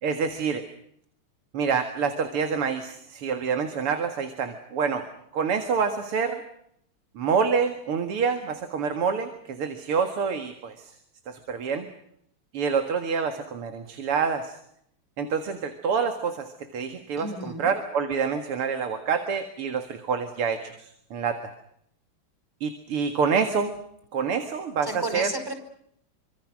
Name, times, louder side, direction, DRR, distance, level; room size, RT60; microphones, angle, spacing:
voice 1, 0.0-0.6 1.5-5.1 5.3-6.4 7.2-10.9 11.3-11.9 12.5-14.6 15.2-21.4 22.6-23.7 24.1-25.3, right 6 dB, 90° right, 8 dB, 2.8 m, -27 dB
voice 2, 17.2-17.7 24.8-25.5, right 1 dB, 10° right, 6 dB, 4.8 m, -32 dB
26.5 x 25.5 x 6.3 m, 0.72 s
omnidirectional pair, 2.4 m